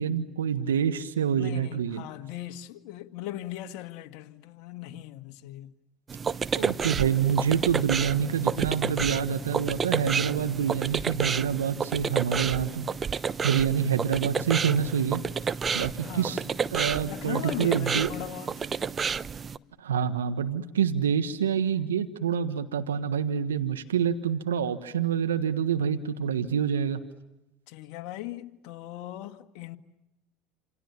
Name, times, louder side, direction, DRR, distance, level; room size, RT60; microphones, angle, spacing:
voice 1, 0.0-2.0 6.5-12.9 13.4-15.2 15.7-16.4 16.7-18.1 19.8-27.0, right 8 dB, 85° right, 1.4 m, -27 dB
voice 2, 1.3-5.7 16.0-16.4 17.0-18.5 27.7-29.8, left 14 dB, 65° left, 1.8 m, -39 dB
sound 1, 6.1-19.6, right 6 dB, 30° right, 0.9 m, -30 dB
28.5 x 27.5 x 7.1 m
hypercardioid pair, 75°, 0 cm